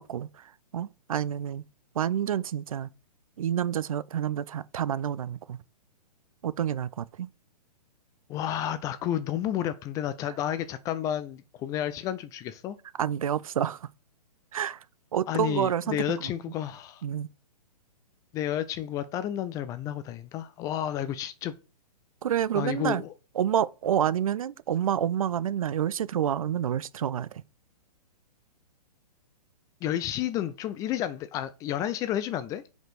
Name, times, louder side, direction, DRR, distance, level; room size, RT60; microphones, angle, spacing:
voice 1, 0.0-1.6 2.0-2.9 3.4-5.6 6.4-7.3 13.0-13.8 14.5-14.8 15.1-16.0 17.0-17.3 22.2-23.0 23.4-27.4, right 9 dB, 55° right, 0.5 m, -28 dB
voice 2, 8.3-12.8 15.3-17.0 18.3-21.5 22.5-23.1 29.8-32.6, left 11 dB, 15° left, 0.4 m, -31 dB
5.9 x 5.1 x 4.8 m
figure-of-eight pair, 120°, 21 cm